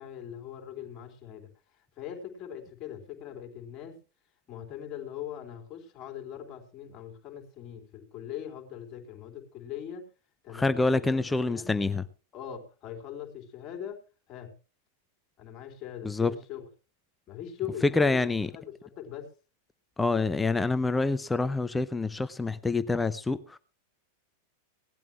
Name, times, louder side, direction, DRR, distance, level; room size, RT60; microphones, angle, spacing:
voice 1, 0.0-4.0 4.5-10.1 10.4-11.7 12.3-14.0 14.3-14.5 15.4-16.7 17.3-18.2 18.5-19.3, left 9 dB, 30° left, 3.7 m, -41 dB
voice 2, 10.5-12.0 16.0-16.3 17.8-18.5 20.0-23.6, left 3 dB, 10° left, 0.7 m, -26 dB
18.5 x 12.0 x 3.2 m
figure-of-eight pair, 90°, 0 cm